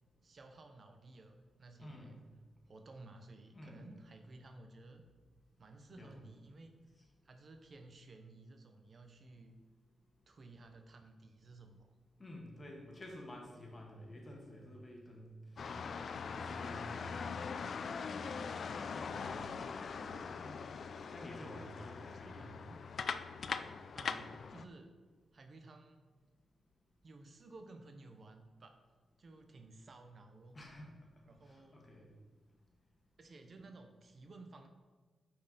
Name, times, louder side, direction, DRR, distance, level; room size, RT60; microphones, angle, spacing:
voice 1, 0.2-2.1 2.7-5.1 5.6-6.8 7.2-9.6 10.3-11.9 19.0-20.4 22.1-22.8 23.9-24.9 25.3-26.1 27.0-28.8 29.2-30.6 31.3-31.8 33.2-34.7, right 2 dB, 50° right, 6 dB, 0.7 m, -55 dB
voice 2, 1.8-2.2 3.5-3.9 5.9-6.2 12.2-15.7 16.2-17.2 20.4-20.7 21.1-22.6 30.5-31.1 31.4-32.1, left 1 dB, 35° left, 0 dB, 1.5 m, -51 dB
sound 1, 15.6-24.7, left 5 dB, 65° left, 0.3 m, -42 dB
5.5 x 4.4 x 5.1 m, 1.3 s
cardioid pair, 70°, 0 cm